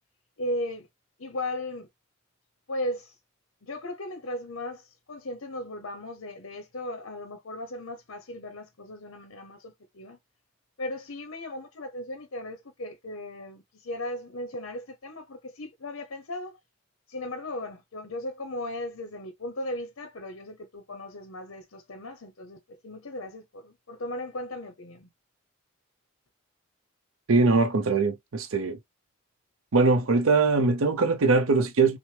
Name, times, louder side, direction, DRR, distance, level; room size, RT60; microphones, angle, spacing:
voice 1, 0.4-0.9 1.2-1.9 2.7-3.2 3.6-10.2 10.8-16.6 17.1-25.1, left 1 dB, 70° left, 0.8 m, -37 dB
voice 2, 27.3-28.8 29.7-32.0, right 3 dB, 80° right, 0.6 m, -22 dB
6.0 x 2.0 x 3.3 m
head